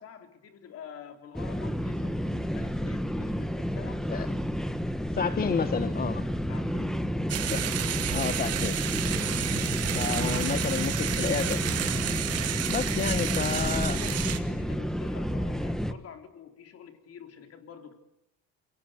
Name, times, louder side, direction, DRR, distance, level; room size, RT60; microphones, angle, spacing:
voice 1, 0.0-4.1 6.5-7.3 9.0-10.9 12.8-17.9, left 7 dB, 50° left, 6 dB, 3.8 m, -47 dB
sound 1, 1.3-15.9, equal, ahead, 1.5 m, -30 dB
voice 2, 5.1-6.3 7.5-7.6 8.1-8.8 9.9-11.6 12.7-14.0, left 6 dB, 30° left, 12 dB, 1.1 m, -30 dB
sound 2, 7.3-14.4, right 10 dB, 55° right, 2.2 m, -31 dB
28.0 x 23.0 x 8.0 m, 0.83 s
cardioid pair, 125°, 30 cm